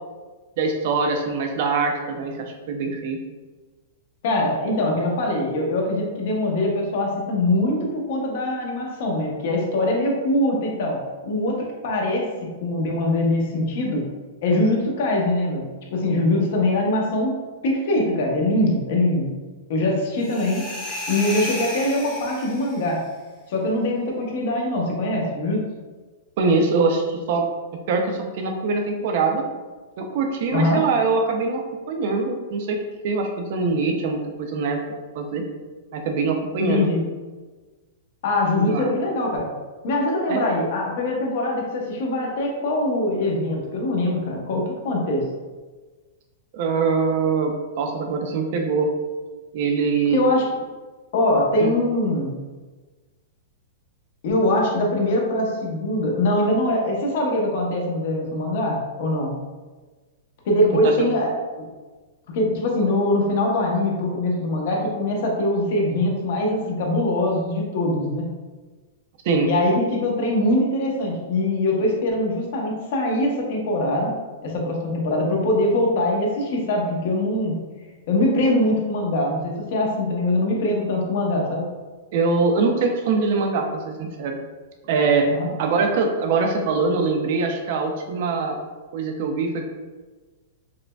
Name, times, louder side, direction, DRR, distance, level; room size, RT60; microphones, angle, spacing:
voice 1, 0.6-3.2 26.4-27.5 27.9-29.5 30.0-31.6 31.9-32.8 33.0-34.8 35.1-35.4 35.9-36.9 38.5-38.9 40.3-40.5 46.5-48.9 49.5-50.3 51.6-51.7 60.7-61.1 69.2-69.5 82.1-84.4 84.9-85.3 85.6-88.6 88.9-89.7, right 4 dB, 50° right, 3 dB, 0.5 m, -23 dB
voice 2, 4.2-11.0 11.2-11.6 11.8-12.3 12.6-14.1 14.4-17.3 17.6-19.3 19.7-20.7 21.1-23.0 23.5-25.7 30.5-30.8 36.7-37.0 38.2-39.5 39.8-45.2 50.1-50.4 51.1-52.4 54.2-59.3 60.4-61.3 62.3-68.3 69.4-74.1 74.4-77.6 78.1-81.7 85.3-85.5, left 1 dB, 55° left, -1 dB, 0.8 m, -22 dB
sound 1, 20.2-22.9, left 1 dB, 25° left, 1.0 m, -32 dB
4.8 x 2.2 x 2.2 m, 1.3 s
supercardioid pair, 160°, 0 cm